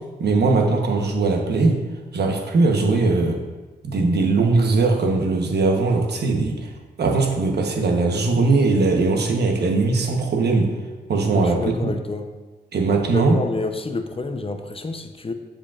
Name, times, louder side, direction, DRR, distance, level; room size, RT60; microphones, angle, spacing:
voice 1, 0.2-1.8 2.1-3.4 3.8-6.7 7.0-10.7 11.1-11.9 12.7-13.4, right 3 dB, 70° right, 3 dB, 1.0 m, -20 dB
voice 2, 11.3-12.3 13.1-15.3, left 3 dB, 30° left, 7 dB, 0.6 m, -29 dB
9.8 x 5.1 x 2.4 m, 1.3 s
cardioid pair, 55°, 18 cm